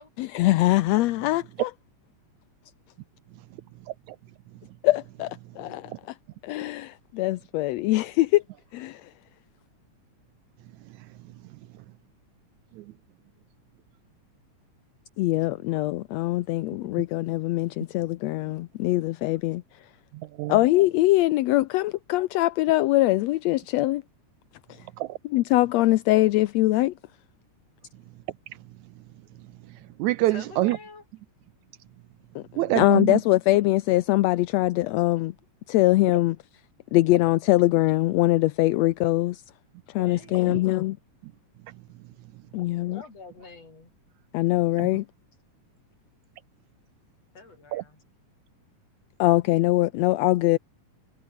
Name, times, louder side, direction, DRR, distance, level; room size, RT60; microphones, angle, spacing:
voice 1, 0.2-1.7 4.8-5.9 6.4-8.4 8.7-9.1 15.2-19.6 20.5-24.0 25.3-26.9 32.3-32.4 32.7-35.3 35.7-36.4 36.9-39.4 39.9-41.0 42.5-43.0 44.3-45.0 49.2-50.6, left 17 dB, 75° left, 1.6 m, -22 dB
voice 2, 20.1-20.5 25.0-25.2 29.7-30.8 32.6-33.2 40.0-40.1 40.5-40.6 44.8-44.9 47.7-47.8, right 17 dB, 75° right, 1.9 m, -27 dB
voice 3, 30.3-31.0 40.0-40.8 42.5-42.7 42.9-43.9 47.3-48.0, left 4 dB, 50° left, 6.7 m, -46 dB
omnidirectional pair, 3.6 m